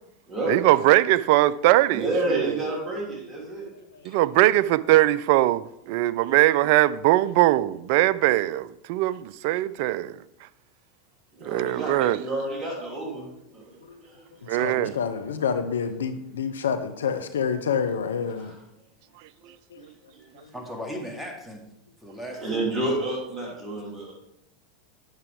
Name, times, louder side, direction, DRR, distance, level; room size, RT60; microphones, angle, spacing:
voice 1, 0.5-2.7 4.0-10.2 11.4-12.2 14.5-15.0, right 16 dB, 60° right, 0.3 m, -21 dB
voice 2, 1.9-3.7 11.3-13.7 14.0-14.2 18.4-18.6 19.4-19.5 22.4-24.1, right 1 dB, 25° right, 2.8 m, -30 dB
voice 3, 14.6-18.5 19.7-19.8, left 6 dB, 80° left, 0.5 m, -27 dB
voice 4, 20.5-21.6 22.0-22.8, equal, ahead, 2.0 m, -36 dB
8.9 x 6.7 x 3.4 m
hypercardioid pair, 90°, 0 cm